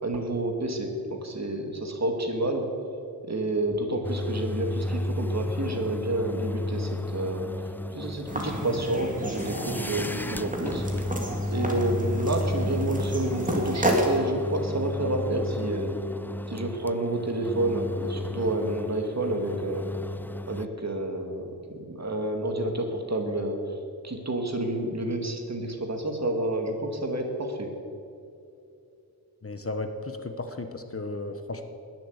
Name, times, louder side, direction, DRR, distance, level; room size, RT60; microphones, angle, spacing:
voice 1, 0.0-2.7 3.2-10.8 11.5-15.9 16.5-19.9 20.5-23.8 24.0-27.7, right 1 dB, 45° right, 3 dB, 2.2 m, -29 dB
sound 1, 4.0-20.7, left 2 dB, 5° left, 0.3 m, -33 dB
sound 2, 8.3-14.2, equal, 20° right, 2.6 m, -31 dB
voice 2, 29.4-31.6, left 2 dB, 35° left, 7 dB, 1.1 m, -34 dB
20.5 x 7.7 x 8.2 m, 2.7 s
wide cardioid pair, 100°, 38 cm